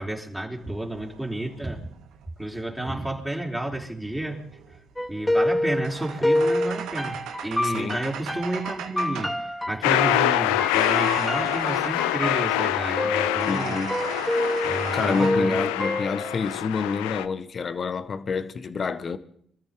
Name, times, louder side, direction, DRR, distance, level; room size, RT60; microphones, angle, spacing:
voice 1, 0.0-1.9 2.4-4.5 5.1-13.9 14.6-15.6, right 1 dB, 5° right, 3.8 m, -31 dB
sound 1, 0.5-2.7 3.9-9.4 10.6-12.1 13.2-15.3, right 8 dB, 75° right, 1.7 m, -38 dB
sound 2, 5.0-16.5, left 1 dB, 10° left, 2.2 m, -28 dB
voice 2, 7.6-8.0 13.4-14.0 14.9-19.2, left 5 dB, 50° left, 1.3 m, -28 dB
sound 3, 9.8-17.3, left 14 dB, 85° left, 0.5 m, -25 dB
26.0 x 13.5 x 3.7 m
hypercardioid pair, 50°, 0 cm